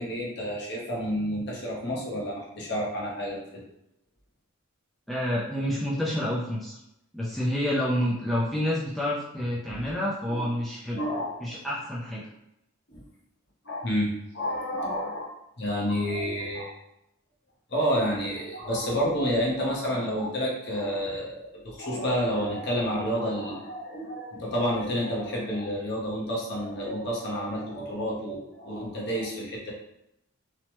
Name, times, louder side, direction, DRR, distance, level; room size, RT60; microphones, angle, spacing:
voice 1, 0.0-3.6 9.7-9.8 10.3-10.5 10.9-11.3 12.9-13.0 13.6-15.3 15.6-16.7 17.7-29.7, equal, 55° left, -4 dB, 0.8 m, -29 dB
voice 2, 5.1-6.8 7.1-11.0 11.4-12.3, equal, ahead, -7 dB, 0.3 m, -28 dB
3.0 x 2.1 x 2.9 m, 0.85 s
head